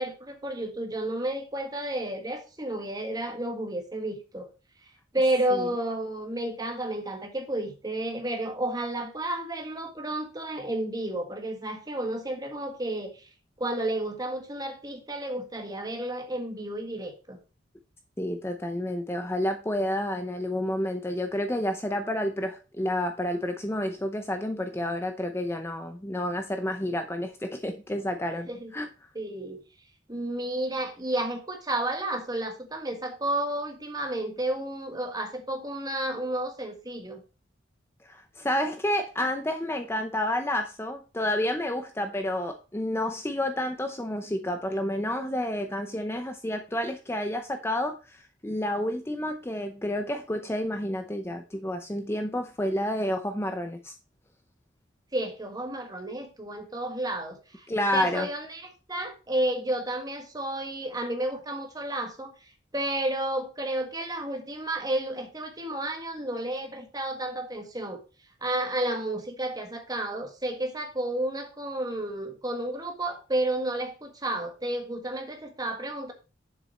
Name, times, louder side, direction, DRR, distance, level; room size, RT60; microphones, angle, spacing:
voice 1, 0.0-4.5 5.1-13.3 13.6-17.4 28.5-28.7 29.1-29.6 30.1-37.2 55.1-57.7 57.9-62.3 62.7-68.0 68.4-76.1, right 1 dB, 20° right, 1.7 m, -31 dB
voice 2, 18.2-28.5 28.7-28.9 38.0-53.9 57.7-58.3, left 1 dB, 15° left, 0.6 m, -30 dB
7.3 x 6.8 x 4.2 m
head